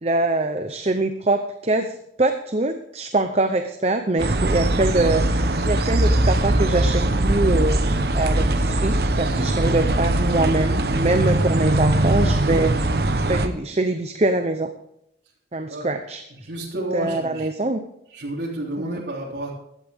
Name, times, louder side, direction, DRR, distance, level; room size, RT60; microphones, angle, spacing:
voice 1, 0.0-7.8 8.1-12.8 13.3-14.7 15.5-16.2 16.9-17.8 18.8-19.0, right 2 dB, 35° right, 7 dB, 0.7 m, -23 dB
sound 1, 4.2-13.5, right 1 dB, 60° right, 1.0 m, -21 dB
voice 2, 16.4-17.5 18.1-19.5, right 1 dB, 80° right, -5 dB, 3.5 m, -30 dB
16.0 x 12.0 x 3.6 m, 0.77 s
head